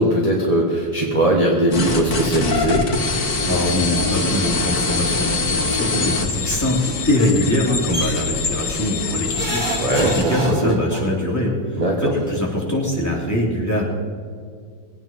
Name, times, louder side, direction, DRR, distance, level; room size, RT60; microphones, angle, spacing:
voice 1, 0.0-2.8 9.8-10.8 11.8-12.1, right 1 dB, 20° right, -2 dB, 1.6 m, -19 dB
sound 1, 1.7-10.3, left 3 dB, 50° left, 2.2 m, -24 dB
voice 2, 3.4-13.8, left 1 dB, 10° left, -4 dB, 3.1 m, -23 dB
sound 2, 7.9-8.2 9.3-11.0 12.2-12.3 12.6-12.7, right 1 dB, 50° right, 3.1 m, -27 dB
21.5 x 9.1 x 5.5 m, 2.1 s
omnidirectional pair, 2.0 m